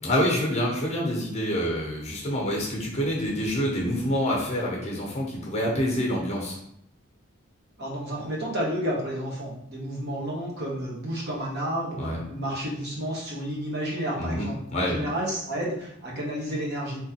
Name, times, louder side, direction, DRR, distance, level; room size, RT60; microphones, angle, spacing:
voice 1, 0.0-6.6 12.0-12.2 14.2-14.5 14.7-15.0, equal, 35° left, -2 dB, 1.0 m, -27 dB
voice 2, 7.8-12.0 12.3-17.0, equal, 55° right, -4 dB, 1.2 m, -31 dB
3.6 x 3.0 x 2.9 m, 0.74 s
head